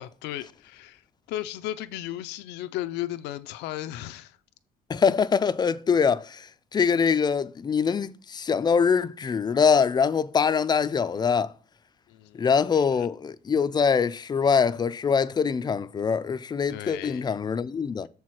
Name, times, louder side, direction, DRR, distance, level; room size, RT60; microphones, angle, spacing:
voice 1, 0.0-4.4 12.1-13.1 16.7-17.4, left 13 dB, 85° left, 0.5 m, -36 dB
voice 2, 4.9-11.5 12.3-18.1, left 6 dB, 25° left, 0.4 m, -23 dB
6.8 x 4.7 x 5.8 m
cardioid pair, 110°, 17 cm